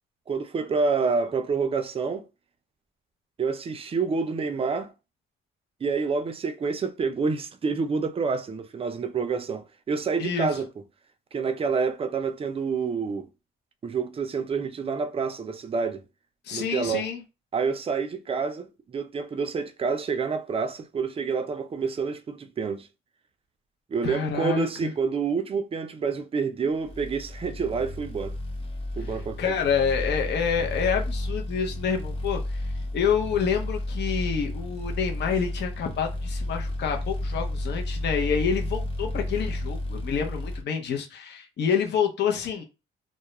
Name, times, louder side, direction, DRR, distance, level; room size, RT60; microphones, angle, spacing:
voice 1, 0.3-2.2 3.4-4.9 5.8-10.7 11.3-13.3 13.8-16.0 16.5-17.1 17.5-22.9 23.9-28.4 29.0-29.5, right 5 dB, 30° right, 0.4 m, -28 dB
voice 2, 10.2-10.5 16.5-17.2 24.0-24.9 29.4-32.6 32.9-42.6, left 7 dB, 60° left, 0.6 m, -27 dB
sound 1, 26.8-40.6, left 1 dB, 30° left, 0.8 m, -32 dB
2.2 x 2.0 x 2.9 m
cardioid pair, 90°, 20 cm